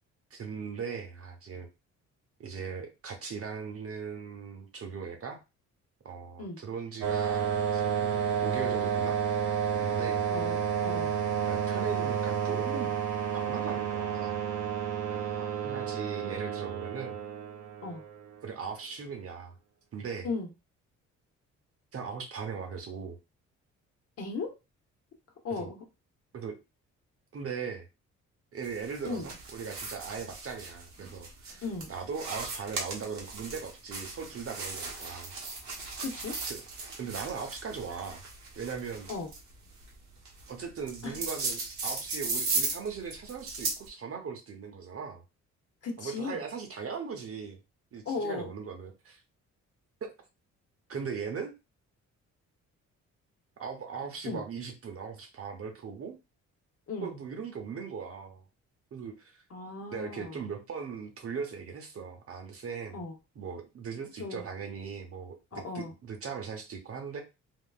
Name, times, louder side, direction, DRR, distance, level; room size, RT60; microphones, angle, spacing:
voice 1, 0.3-1.7 2.4-5.4 6.0-9.2 9.7-10.2 11.4-12.9 13.3-14.4 15.1-17.2 18.4-19.5 19.9-20.3 21.9-23.2 25.6-25.7 26.3-26.6 27.3-27.9 28.5-35.3 36.5-38.2 38.6-39.1 40.5-45.2 46.0-47.6 47.9-49.2 50.9-51.5 53.6-56.2 57.0-58.4 58.9-59.4 59.9-63.0 63.4-67.2, right 6 dB, 50° right, 4 dB, 0.9 m, -39 dB
sound 1, 7.0-18.4, right 7 dB, 85° right, 0.8 m, -30 dB
voice 2, 10.3-11.1 17.8-18.0 20.2-20.5 24.2-24.5 25.4-25.8 29.1-29.3 31.6-31.9 36.0-36.3 39.1-39.3 41.0-41.2 45.8-46.4 48.0-48.5 54.2-54.4 56.9-57.1 59.5-60.4 62.9-63.2 64.2-64.4 65.5-65.9, left 4 dB, 50° left, 3 dB, 1.0 m, -36 dB
sound 2, 28.6-43.9, right 3 dB, 65° right, 1.2 m, -37 dB
3.6 x 2.4 x 2.4 m, 0.26 s
cardioid pair, 90°, 30 cm